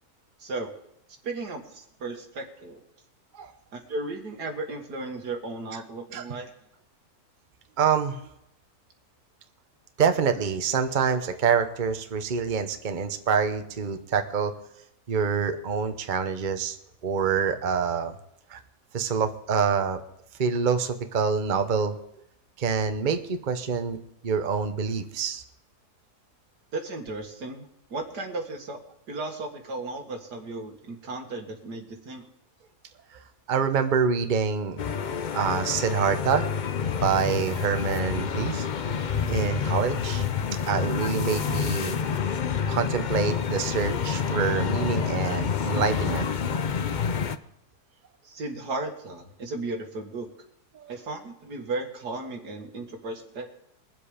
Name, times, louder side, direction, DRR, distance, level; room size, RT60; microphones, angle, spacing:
voice 1, 0.4-0.7 1.2-2.8 3.7-6.5 26.7-27.6 27.9-28.8 29.1-32.2 48.2-50.3 50.9-53.5, right 2 dB, 85° right, 4 dB, 2.4 m, -35 dB
voice 2, 7.8-8.2 10.0-14.5 15.1-16.8 17.0-18.1 18.5-18.6 18.9-20.0 20.4-22.0 22.6-24.0 24.2-25.4 33.5-34.8 35.3-36.5 36.9-38.7 39.3-40.2 40.7-42.0 42.7-46.3 50.7-50.8, right 6 dB, 35° right, 8 dB, 1.0 m, -26 dB
sound 1, 34.8-47.4, left 7 dB, 55° left, 0.5 m, -28 dB
22.0 x 7.6 x 5.0 m, 0.78 s
omnidirectional pair, 1.7 m